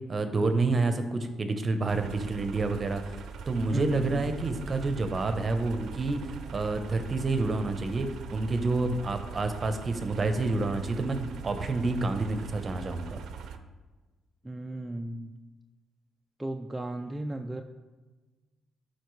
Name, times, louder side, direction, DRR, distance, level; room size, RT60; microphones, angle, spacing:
voice 1, 0.1-3.2 3.5-13.2, right 3 dB, 35° right, 8 dB, 0.8 m, -29 dB
sound 1, 1.9-13.6, right 6 dB, 75° right, 0.5 m, -42 dB
voice 2, 3.7-4.2 14.4-15.4 16.4-17.6, right 1 dB, 15° right, 4 dB, 0.4 m, -35 dB
11.5 x 4.3 x 3.2 m, 1.3 s
cardioid pair, 90°, 0 cm